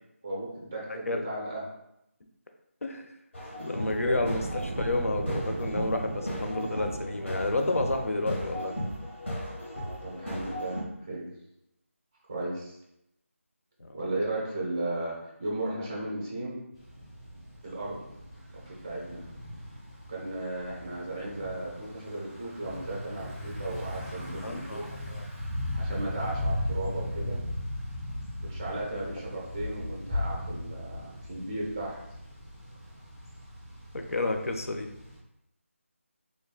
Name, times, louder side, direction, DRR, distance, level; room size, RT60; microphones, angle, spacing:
voice 1, 0.2-1.6 4.0-4.2 9.8-11.3 12.3-12.8 13.9-16.6 17.6-18.0 18.5-19.2 20.1-24.9 25.7-27.4 28.4-32.0, right 2 dB, 15° right, -3 dB, 0.5 m, -35 dB
voice 2, 0.9-1.2 2.8-3.1 3.6-8.7 13.8-14.0 24.4-25.3 33.9-34.9, left 2 dB, 80° left, 4 dB, 0.6 m, -31 dB
sound 1, 3.3-10.8, equal, 60° left, 1.4 m, -36 dB
sound 2, 3.8-8.8, right 2 dB, 80° right, 0.4 m, -37 dB
Thunder / Bicycle, 16.7-35.2, left 1 dB, 20° left, 1.1 m, -37 dB
3.8 x 3.5 x 2.3 m, 0.82 s
figure-of-eight pair, 175°, 8 cm